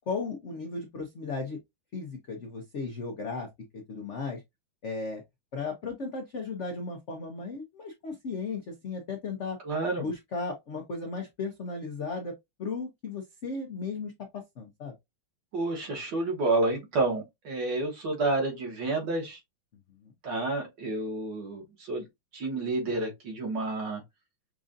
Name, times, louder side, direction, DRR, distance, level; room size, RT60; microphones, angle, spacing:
voice 1, 0.1-1.6 1.9-3.5 3.7-4.4 4.8-5.2 5.5-9.6 10.0-14.9 20.0-20.1, left 4 dB, 80° left, 0.6 m, -35 dB
voice 2, 9.6-10.1 15.5-19.4 20.2-22.1 22.3-24.0, right 2 dB, 60° right, 2.0 m, -29 dB
6.0 x 2.5 x 2.5 m
omnidirectional pair, 2.3 m